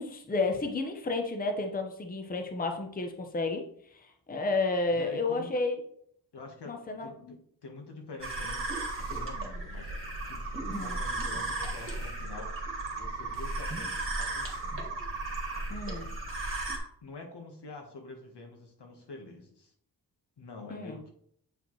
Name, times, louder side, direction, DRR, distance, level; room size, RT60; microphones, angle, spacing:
voice 1, 0.0-3.6 3.9-5.8 6.7-7.3 10.6-11.0 15.7-16.1 20.7-21.0, left 3 dB, 20° left, 4 dB, 0.7 m, -31 dB
voice 2, 5.0-5.5 6.3-8.7 9.0-12.5 12.9-14.9 15.5-16.1 17.0-19.7 20.4-21.1, left 3 dB, 80° left, 2 dB, 1.4 m, -47 dB
sound 1, 8.2-16.8, right 2 dB, 30° right, 1.7 m, -35 dB
7.9 x 4.8 x 3.1 m, 0.66 s
wide cardioid pair, 145°, 40 cm